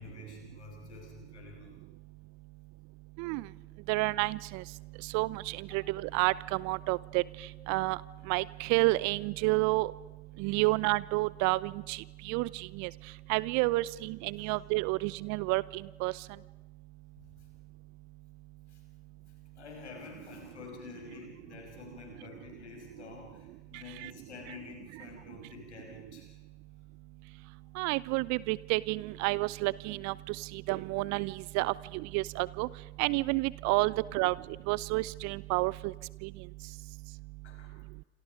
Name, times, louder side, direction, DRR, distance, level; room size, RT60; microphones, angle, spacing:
voice 1, 0.0-1.7 5.7-5.9 14.4-14.5 17.2-17.5 18.7-18.8 19.3-26.3 27.4-27.8 33.9-34.0 37.4-37.8, left 4 dB, 85° left, 1 dB, 6.3 m, -49 dB
voice 2, 3.9-4.6 5.1-7.2 7.7-8.0 8.3-9.9 10.4-12.9 13.3-16.1 24.0-24.1 27.8-32.7 33.0-34.3 34.7-35.9 36.2-36.3, right 22 dB, 55° right, 21 dB, 0.7 m, -30 dB
28.5 x 27.0 x 5.2 m, 1.2 s
figure-of-eight pair, 65°, 33 cm